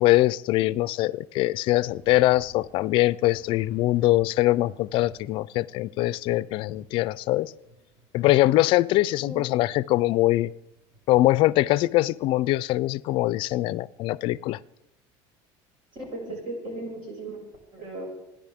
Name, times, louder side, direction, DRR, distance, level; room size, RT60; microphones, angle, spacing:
voice 1, 0.0-7.5 8.1-10.5 11.1-14.6, left 17 dB, 55° left, 20 dB, 0.4 m, -22 dB
Thunder / Rain, 1.8-11.6, right 1 dB, 35° right, 6.2 m, -53 dB
voice 2, 15.9-17.4 17.7-18.1, right 2 dB, 55° right, 0 dB, 5.7 m, -36 dB
29.5 x 10.5 x 3.6 m, 0.89 s
cardioid pair, 145°, 10 cm